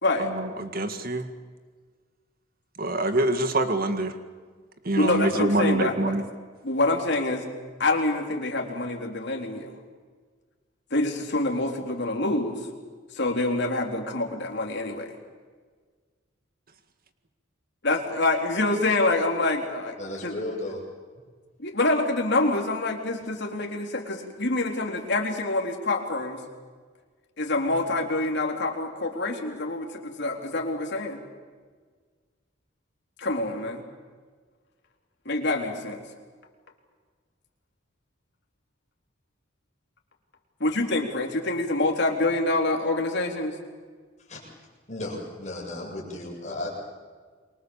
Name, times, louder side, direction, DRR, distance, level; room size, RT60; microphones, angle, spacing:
voice 1, 0.2-1.3 2.8-4.2 4.8-6.2, right 2 dB, 50° right, 8 dB, 1.9 m, -25 dB
voice 2, 5.0-6.1 6.6-7.5 7.8-9.7 10.9-12.6 13.1-15.1 17.8-19.9 20.2-20.3 21.6-26.4 27.4-31.2 33.2-33.8 35.3-36.0 40.6-43.6, left 2 dB, 60° left, 1 dB, 4.0 m, -26 dB
voice 3, 20.0-20.8 44.3-44.4 44.9-46.7, left 1 dB, 35° left, -1 dB, 7.9 m, -34 dB
28.0 x 24.0 x 7.4 m, 1.5 s
head